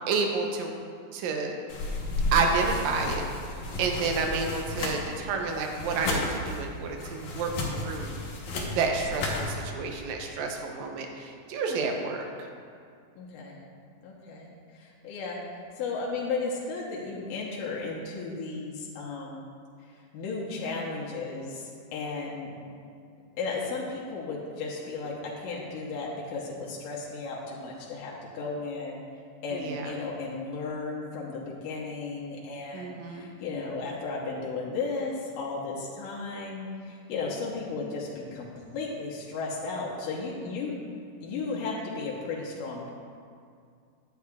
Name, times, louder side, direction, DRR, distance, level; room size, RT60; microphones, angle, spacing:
voice 1, 0.1-0.8 1.1-1.6 2.3-3.2 3.8-8.1 8.7-12.5 29.5-29.9 32.7-33.3, right 4 dB, 75° right, 2 dB, 1.9 m, -30 dB
sound 1, 1.7-9.6, left 2 dB, 70° left, 2.3 m, -33 dB
voice 2, 13.2-13.6 14.0-14.5 14.7-15.4 15.8-19.4 20.1-22.5 23.4-29.0 29.4-40.8 41.2-42.9, left 4 dB, 90° left, -4 dB, 2.7 m, -34 dB
10.5 x 9.1 x 2.4 m, 2.3 s
omnidirectional pair, 3.8 m